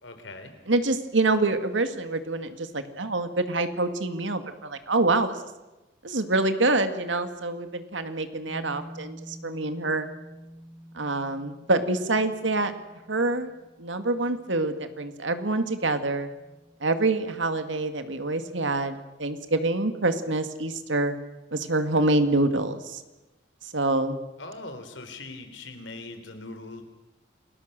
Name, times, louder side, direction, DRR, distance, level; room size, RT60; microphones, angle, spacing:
voice 1, 0.0-0.5 24.4-26.8, left 2 dB, 80° left, 7 dB, 3.8 m, -41 dB
voice 2, 0.7-5.4 6.0-10.1 10.9-12.7 13.1-13.5 13.8-16.3 16.8-21.1 21.5-23.0 23.7-24.2, right 2 dB, 85° right, 9 dB, 2.1 m, -26 dB
sound 1, 8.4-17.9, right 1 dB, 30° right, 7.5 m, -48 dB
28.5 x 20.5 x 6.8 m, 1.1 s
head